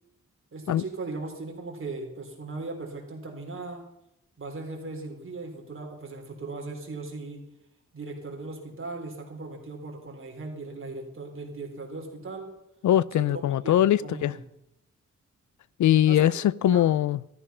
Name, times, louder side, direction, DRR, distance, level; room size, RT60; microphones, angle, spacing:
voice 1, 0.5-3.8 4.4-7.4 7.9-12.5 13.2-14.4 16.1-16.2 16.6-16.9, right 3 dB, 45° right, 3.9 m, -38 dB
voice 2, 12.8-14.3 15.8-17.2, left 11 dB, 85° left, 0.5 m, -21 dB
13.5 x 13.0 x 5.6 m
cardioid pair, 90°, 29 cm